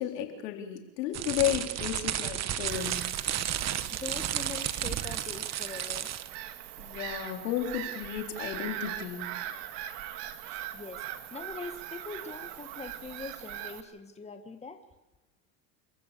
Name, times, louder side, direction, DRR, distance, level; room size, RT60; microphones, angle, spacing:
voice 1, 0.0-3.0 6.8-9.3, left 11 dB, 75° left, 3 dB, 4.0 m, -33 dB
sound 1, 1.1-6.3, right 11 dB, 35° right, 1.2 m, -32 dB
Bird vocalization bird call bird song / Gull seagull, 2.7-13.8, right 12 dB, 55° right, 2.2 m, -41 dB
voice 2, 3.4-6.1 10.5-11.0 11.3-14.8, left 4 dB, 15° left, 6 dB, 1.8 m, -43 dB
28.5 x 15.0 x 6.9 m, 1.0 s
hypercardioid pair, 95°, 49 cm